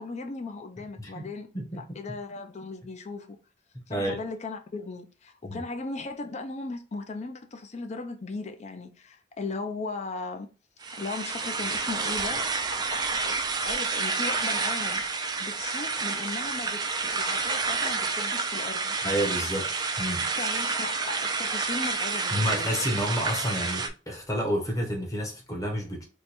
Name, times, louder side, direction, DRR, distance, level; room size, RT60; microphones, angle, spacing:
voice 1, 0.0-1.5 1.7-3.4 3.9-10.5 11.0-12.5 12.7-15.0 15.4-18.9 20.4-22.7, left 3 dB, 40° left, 0.4 m, -37 dB
voice 2, 3.9-4.2 5.4-5.6 19.0-19.7 20.0-20.3 22.3-26.0, equal, 20° left, 0.9 m, -29 dB
sound 1, 10.8-23.9, right 4 dB, 20° right, 0.3 m, -29 dB
3.1 x 2.2 x 4.0 m
head